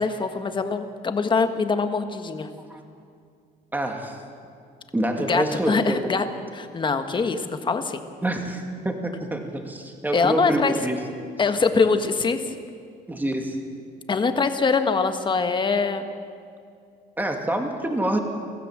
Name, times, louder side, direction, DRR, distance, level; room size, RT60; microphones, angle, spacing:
voice 1, 0.0-2.5 5.3-6.2 6.5-8.0 10.1-10.7 11.4-12.4 14.1-16.1, left 4 dB, 30° left, 8 dB, 1.5 m, -23 dB
voice 2, 3.7-4.2 4.9-6.0 8.2-11.0 13.1-13.6 17.2-18.2, right 1 dB, 10° right, 3 dB, 2.5 m, -26 dB
23.5 x 15.0 x 7.5 m, 2.3 s
cardioid pair, 110°, 17 cm